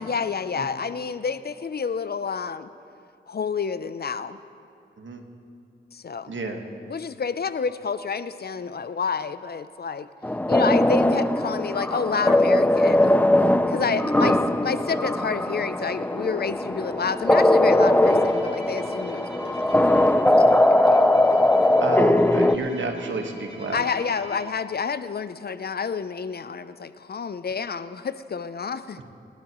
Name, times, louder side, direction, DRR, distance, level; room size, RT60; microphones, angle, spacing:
voice 1, 0.0-2.7 3.3-4.4 5.9-6.4 6.9-10.1 10.5-13.2 13.7-21.2 23.7-29.0, left 5 dB, 50° left, 13 dB, 0.5 m, -29 dB
voice 2, 6.3-6.6 13.8-14.5 21.8-23.8, right 3 dB, 70° right, 3 dB, 1.5 m, -31 dB
sound 1, 10.2-22.6, left 1 dB, 10° left, 0.6 m, -20 dB
Bowed string instrument, 18.0-24.7, right 1 dB, 30° right, 2.9 m, -43 dB
23.5 x 12.5 x 3.1 m, 2.5 s
cardioid pair, 40°, 20 cm